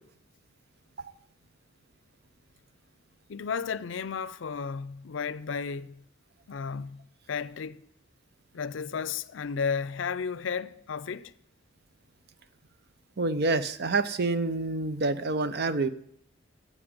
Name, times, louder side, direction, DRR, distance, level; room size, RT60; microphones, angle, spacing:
voice 1, 3.3-6.0 6.5-7.8 8.5-11.3, left 6 dB, 70° left, 0.5 m, -33 dB
voice 2, 13.2-15.9, right 3 dB, 55° right, 0.7 m, -27 dB
8.8 x 8.4 x 8.7 m
head